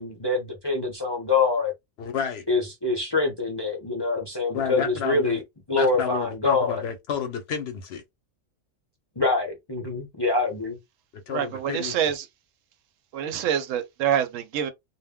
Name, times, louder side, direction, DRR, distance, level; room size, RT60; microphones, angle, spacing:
voice 1, 0.0-1.7 2.5-5.4 5.7-6.8 9.2-10.8, left 3 dB, 30° left, 0.4 m, -25 dB
voice 2, 2.0-2.5 4.5-5.4 5.7-8.0 11.1-11.9, left 7 dB, 65° left, 0.7 m, -30 dB
voice 3, 11.3-12.3 13.1-14.7, right 9 dB, 80° right, 0.9 m, -26 dB
2.3 x 2.1 x 3.4 m
omnidirectional pair, 1.3 m